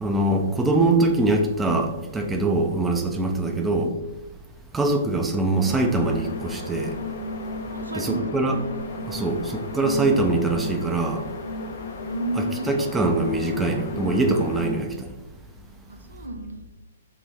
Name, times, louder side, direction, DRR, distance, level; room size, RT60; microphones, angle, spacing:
voice 1, 0.0-3.9 4.7-6.9 7.9-8.6 9.0-11.2 12.4-15.1, right 2 dB, 10° right, 3 dB, 0.3 m, -23 dB
voice 2, 3.4-3.8 7.7-8.3 12.0-12.7 15.9-16.6, right 2 dB, 85° right, 5 dB, 0.5 m, -32 dB
sound 1, 5.5-14.8, left 2 dB, 65° left, 0.4 m, -34 dB
3.6 x 2.1 x 2.8 m, 1.0 s
figure-of-eight pair, 125°, 0 cm